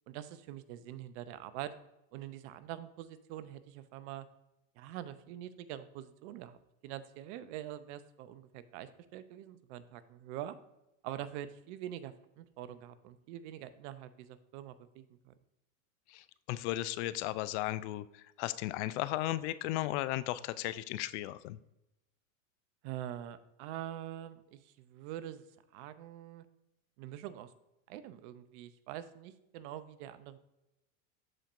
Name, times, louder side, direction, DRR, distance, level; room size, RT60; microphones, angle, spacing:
voice 1, 0.1-1.7 2.1-4.3 4.8-6.6 6.8-10.6 11.0-15.3 22.8-25.4 25.7-26.5 27.0-27.5 27.9-30.4, right 12 dB, 55° right, 13 dB, 0.8 m, -44 dB
voice 2, 16.1-21.6, left 15 dB, 55° left, 16 dB, 0.5 m, -35 dB
13.0 x 4.4 x 2.6 m, 0.89 s
hypercardioid pair, 110°, 41 cm